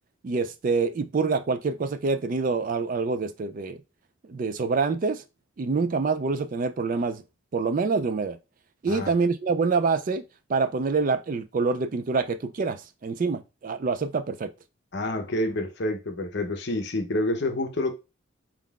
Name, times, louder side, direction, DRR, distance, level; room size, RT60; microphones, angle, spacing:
voice 1, 0.2-3.8 4.3-5.2 5.6-7.2 7.5-8.4 8.8-10.2 10.5-14.5, right 4 dB, 40° right, 0.3 m, -26 dB
voice 2, 14.9-17.9, left 1 dB, 55° left, 0.7 m, -28 dB
4.5 x 3.7 x 2.4 m
head